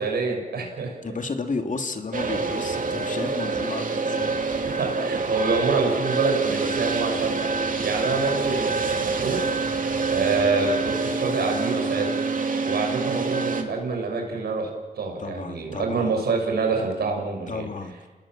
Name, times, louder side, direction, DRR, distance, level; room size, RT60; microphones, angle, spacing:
voice 1, 0.0-1.0 4.7-7.4 7.8-9.5 10.1-12.2 12.6-14.7 15.0-17.7, right 4 dB, 85° right, 2 dB, 6.2 m, -26 dB
voice 2, 1.0-4.8 15.2-16.2 17.5-17.9, left 3 dB, 55° left, 5 dB, 2.9 m, -32 dB
sound 1, 2.1-13.6, right 4 dB, 55° right, 2.8 m, -26 dB
28.5 x 19.0 x 7.7 m, 1.3 s
cardioid pair, 60°, 16 cm